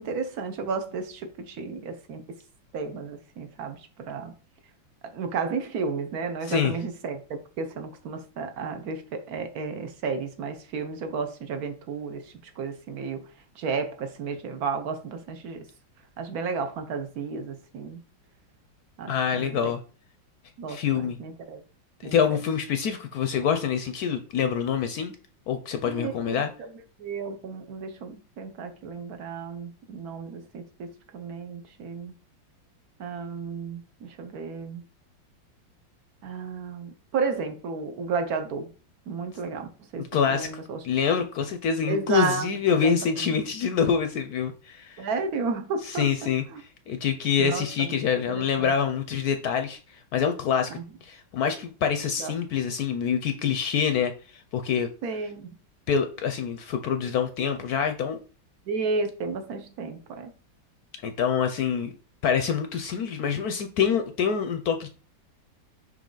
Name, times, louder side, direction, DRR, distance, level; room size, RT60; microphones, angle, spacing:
voice 1, 0.0-2.4 2.7-4.3 5.0-15.7 16.2-18.0 19.0-19.7 20.6-21.6 22.0-22.4 25.9-32.1 33.0-34.8 36.2-38.7 39.1-40.8 41.9-43.3 45.0-46.6 47.4-48.0 48.3-48.7 50.7-50.9 52.2-52.3 55.0-55.5 58.7-60.3, right 4 dB, 60° right, 1.2 m, -33 dB
voice 2, 19.1-19.8 20.7-21.2 22.0-25.1 25.5-26.5 40.0-40.5 40.8-45.1 45.9-46.4 46.9-50.7 51.0-54.9 55.9-58.2 61.0-61.9 62.2-64.9, left 7 dB, 70° left, 0.9 m, -26 dB
5.4 x 4.8 x 3.8 m
omnidirectional pair, 2.0 m